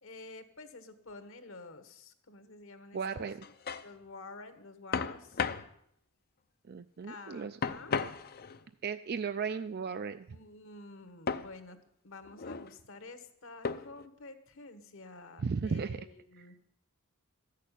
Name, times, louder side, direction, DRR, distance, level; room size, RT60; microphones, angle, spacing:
voice 1, 0.0-3.3 3.8-5.4 7.0-8.0 10.3-11.8 12.0-16.5, left 3 dB, 65° left, 10 dB, 1.3 m, -50 dB
voice 2, 2.9-3.4 6.7-7.6 8.8-10.3 15.4-16.0, right 5 dB, 45° right, 11 dB, 0.4 m, -35 dB
sound 1, 3.3-3.9 4.9-5.7 7.6-8.6 11.3-11.5 12.2-12.7 13.6-14.1, left 5 dB, 45° left, 0.6 m, -35 dB
14.0 x 6.6 x 9.9 m, 0.75 s
head